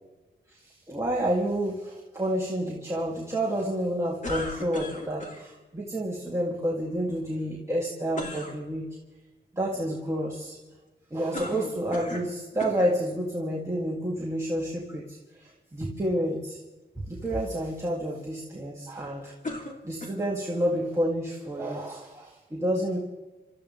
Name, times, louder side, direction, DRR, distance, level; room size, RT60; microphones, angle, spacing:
voice 1, 0.5-8.9 9.5-10.6 11.1-16.6 17.0-19.3 19.8-23.0, equal, 15° right, -4 dB, 2.5 m, -29 dB
sound 1, 4.2-5.4 8.1-8.6 11.3-12.3 12.6-13.0 13.8-13.9 19.4-20.4, left 2 dB, 40° left, 3.1 m, -36 dB
28.0 x 14.0 x 3.4 m, 1.2 s
wide cardioid pair, 105°, 19 cm